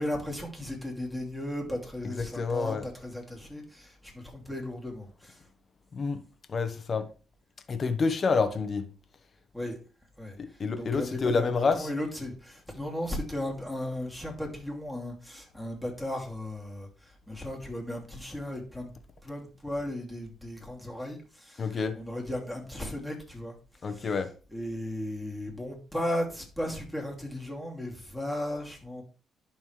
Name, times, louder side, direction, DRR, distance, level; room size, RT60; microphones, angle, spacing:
voice 1, 0.0-5.4 9.5-9.8 10.2-18.9 19.2-23.6 23.8-24.1 24.5-29.0, left 1 dB, ahead, 2.6 m, -36 dB
voice 2, 2.0-2.9 5.9-6.2 6.5-7.1 7.7-8.9 10.4-11.9 21.6-22.0 23.8-24.3, left 4 dB, 40° left, 1.1 m, -28 dB
11.0 x 4.3 x 3.3 m
cardioid pair, 90°, 0 cm